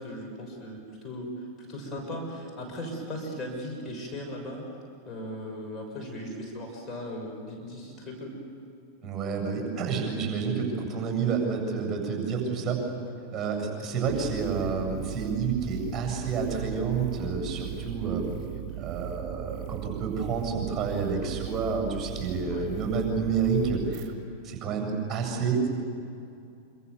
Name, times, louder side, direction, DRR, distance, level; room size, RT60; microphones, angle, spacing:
voice 1, 0.0-4.7 5.1-8.3 18.7-18.8 21.1-21.3 22.5-22.7, equal, 20° left, 0 dB, 6.4 m, -38 dB
voice 2, 9.0-12.8 13.3-18.2 18.8-24.1 24.4-25.7, right 5 dB, 20° right, 2 dB, 7.8 m, -29 dB
sound 1, 14.0-24.1, right 13 dB, 40° right, 2.4 m, -37 dB
27.0 x 26.0 x 7.2 m, 2.5 s
figure-of-eight pair, 90°, 0 cm